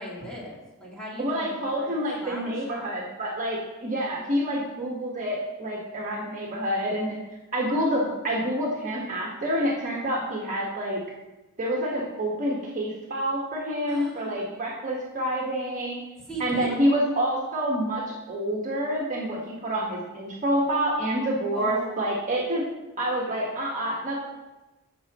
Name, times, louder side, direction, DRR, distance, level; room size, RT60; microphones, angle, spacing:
voice 1, 0.0-2.9 13.9-14.4 16.3-16.9 21.5-21.9, equal, 5° left, -6 dB, 2.6 m, -39 dB
voice 2, 1.2-7.2 7.5-11.0 11.6-16.0 16.4-22.6 23.0-24.2, equal, 35° right, -3 dB, 1.5 m, -27 dB
15.0 x 6.2 x 3.0 m, 1.1 s
head